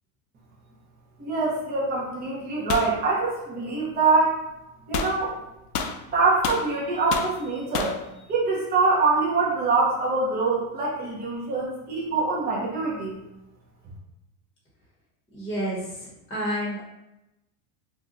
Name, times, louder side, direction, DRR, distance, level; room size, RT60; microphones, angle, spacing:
voice 1, 1.2-4.5 4.9-5.3 6.1-8.0 8.3-13.2, right 3 dB, 20° right, -4 dB, 0.8 m, -24 dB
sound 1, 2.7-2.9 4.9-5.2 5.7-6.7 7.1-7.3 7.7-8.0, left 6 dB, 90° left, 0.5 m, -29 dB
voice 2, 15.3-16.8, equal, 10° left, -6 dB, 1.1 m, -30 dB
2.7 x 2.3 x 3.7 m, 0.92 s
supercardioid pair, 125°, 44 cm